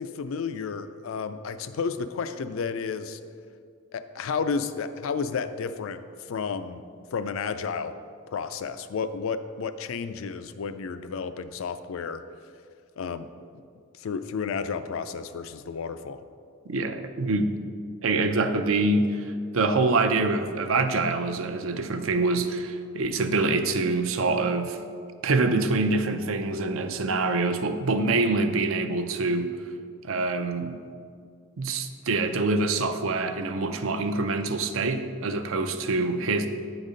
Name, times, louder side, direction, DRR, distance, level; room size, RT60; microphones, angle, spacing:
voice 1, 0.0-3.2 3.9-6.0 6.3-6.8 7.1-7.9 8.3-12.2 13.0-13.3 14.0-16.3, left 5 dB, 80° left, 11 dB, 0.4 m, -32 dB
voice 2, 16.7-17.6 18.0-24.8 25.2-29.5 30.0-30.7 31.6-36.5, right 3 dB, 80° right, 8 dB, 0.5 m, -25 dB
8.9 x 4.1 x 5.0 m, 2.2 s
head